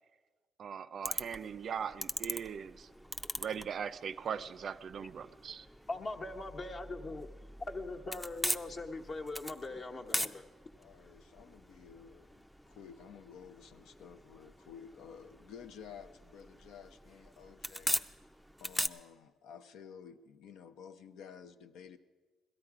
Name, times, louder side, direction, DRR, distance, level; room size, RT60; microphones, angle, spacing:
voice 1, 0.6-2.9 3.4-5.7, right 7 dB, 55° right, 0.4 m, -40 dB
sound 1, 1.0-18.9, equal, 5° left, 0.4 m, -42 dB
voice 2, 5.9-7.3 7.7-10.4, left 2 dB, 45° left, 1.1 m, -41 dB
voice 3, 10.8-18.2 18.6-22.0, left 7 dB, 85° left, 0.6 m, -52 dB
17.0 x 13.0 x 4.8 m
cardioid pair, 90°, 0 cm